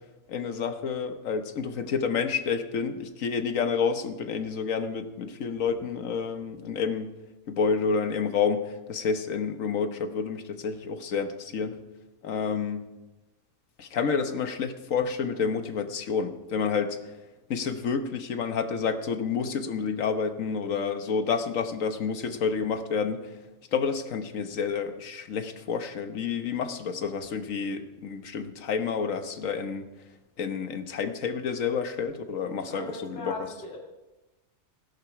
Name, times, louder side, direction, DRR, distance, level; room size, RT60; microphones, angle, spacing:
voice 1, 0.3-7.1 7.5-11.8 12.2-12.9 13.8-17.1 17.5-23.4 23.7-29.9 30.4-33.3, left 6 dB, 85° left, 8 dB, 1.5 m, -29 dB
voice 2, 32.7-33.8, left 1 dB, 60° left, -2 dB, 2.2 m, -38 dB
17.0 x 11.0 x 4.8 m, 1.1 s
omnidirectional pair, 1.3 m